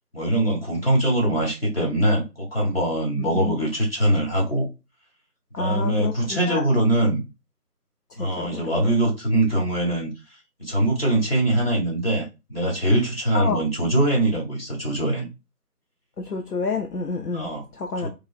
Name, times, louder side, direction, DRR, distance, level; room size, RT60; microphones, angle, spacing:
voice 1, 0.1-4.7 5.6-7.2 8.2-10.1 10.6-15.3 17.3-17.6 18.0-18.1, right 1 dB, 35° left, 1.4 m, -22 dB
voice 2, 3.2-3.5 5.5-6.6 8.2-8.9 13.3-13.6 16.2-18.1, left 4 dB, 70° left, 0.7 m, -29 dB
3.6 x 3.1 x 2.4 m
figure-of-eight pair, 175°, 48 cm